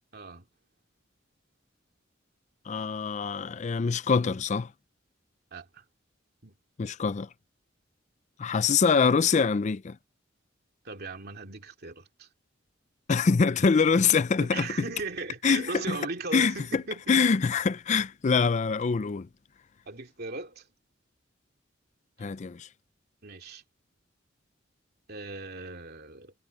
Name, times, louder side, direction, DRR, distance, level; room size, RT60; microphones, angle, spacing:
voice 1, 0.1-0.4 5.5-5.8 6.4-6.5 10.8-12.3 14.4-17.2 19.9-20.7 23.2-23.6 25.1-26.3, right 3 dB, 55° right, 2.7 m, -38 dB
voice 2, 2.7-4.7 6.8-7.3 8.4-10.0 13.1-14.7 15.4-16.0 16.3-16.8 17.1-19.3 22.2-22.7, left 5 dB, 40° left, 0.4 m, -24 dB
head